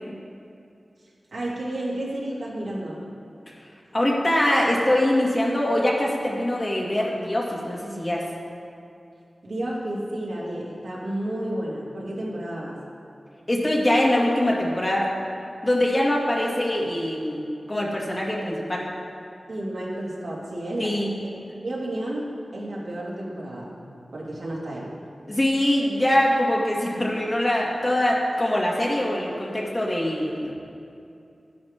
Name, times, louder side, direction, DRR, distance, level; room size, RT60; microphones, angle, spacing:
voice 1, 1.0-3.1 9.4-12.8 19.5-21.3 21.6-23.7 24.1-24.9, right 1 dB, 75° right, -6 dB, 2.7 m, -31 dB
voice 2, 3.9-8.3 13.5-15.1 15.6-17.4 17.7-18.9 20.8-21.1 25.3-30.5, left 1 dB, 30° left, -4 dB, 2.2 m, -23 dB
13.0 x 10.5 x 3.7 m, 2.6 s
wide cardioid pair, 75°, 0 cm